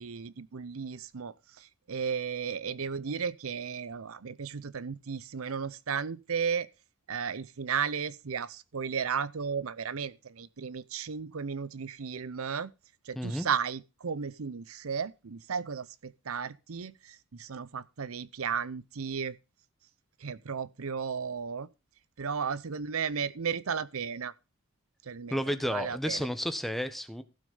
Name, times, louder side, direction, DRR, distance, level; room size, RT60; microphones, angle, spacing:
voice 1, 0.0-6.7 7.1-12.7 13.0-19.4 20.2-21.7 22.2-24.3 25.0-25.4 25.7-26.3, right 6 dB, 85° right, 0.7 m, -34 dB
voice 2, 13.1-13.5 25.3-27.2, equal, ahead, 1.2 m, -32 dB
15.5 x 6.3 x 5.5 m
head